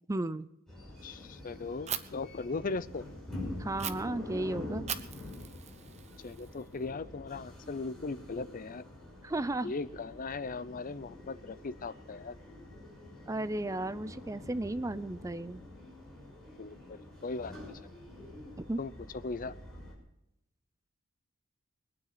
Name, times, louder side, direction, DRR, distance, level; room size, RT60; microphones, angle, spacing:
voice 1, 0.1-0.5 3.6-4.9 9.2-9.7 13.3-15.6 18.6-18.8, right 2 dB, 15° right, 15 dB, 0.4 m, -34 dB
sound 1, 0.7-20.0, left 1 dB, ahead, 6.0 m, -46 dB
voice 2, 1.0-3.1 6.2-8.8 9.6-12.3 16.6-17.8 18.8-18.9 19.2-19.5, left 3 dB, 40° left, 17 dB, 0.5 m, -38 dB
Fire, 1.9-2.0 3.8-3.9 4.9-6.8, right 9 dB, 30° right, 0.8 m, -39 dB
22.5 x 9.3 x 5.8 m, 0.85 s
head